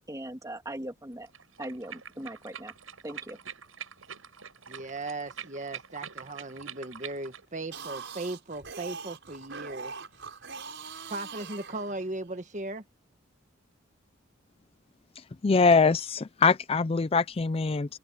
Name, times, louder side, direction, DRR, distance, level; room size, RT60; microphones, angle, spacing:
voice 1, 0.1-1.3 1.6-2.7 3.0-3.4, right 1 dB, 15° right, 2.6 m, -39 dB
sound 1, 1.3-7.4, right 8 dB, 85° right, 6.6 m, -45 dB
voice 2, 4.7-9.9 11.1-12.8, right 2 dB, 35° right, 1.4 m, -37 dB
sound 2, 7.6-12.3, right 5 dB, 60° right, 7.1 m, -42 dB
voice 3, 15.2-18.0, left 4 dB, 30° left, 0.4 m, -23 dB
head